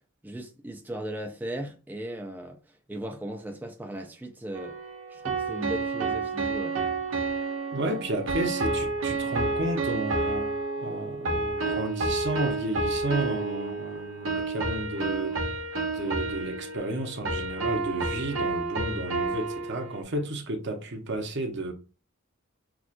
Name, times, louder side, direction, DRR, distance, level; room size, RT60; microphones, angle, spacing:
voice 1, 0.2-4.8 5.1-6.8, right 1 dB, 10° right, 0.4 m, -37 dB
sound 1, 4.5-20.0, right 3 dB, 85° right, 1.1 m, -30 dB
voice 2, 7.7-10.5 10.8-15.4 15.9-21.7, right 2 dB, 60° right, 0.9 m, -32 dB
5.9 x 2.4 x 2.5 m
head